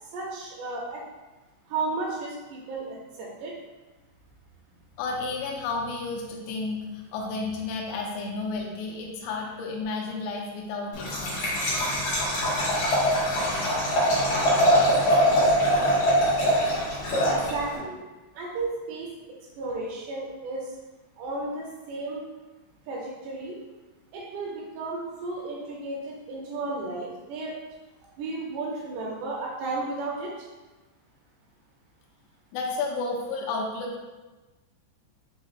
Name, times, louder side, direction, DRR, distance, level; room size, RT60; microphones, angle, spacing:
voice 1, 0.1-1.0 1.7-3.6 17.3-18.0 18.4-20.7 21.2-22.3 22.9-23.6 24.1-27.6 28.2-30.5, right 3 dB, 80° right, -2 dB, 2.5 m, -33 dB
voice 2, 5.0-11.5 32.5-34.0, left 3 dB, 85° left, -1 dB, 2.4 m, -32 dB
Liquid, 10.9-17.8, equal, 65° left, 1.6 m, -23 dB
6.8 x 2.8 x 2.4 m, 1.2 s
omnidirectional pair, 5.2 m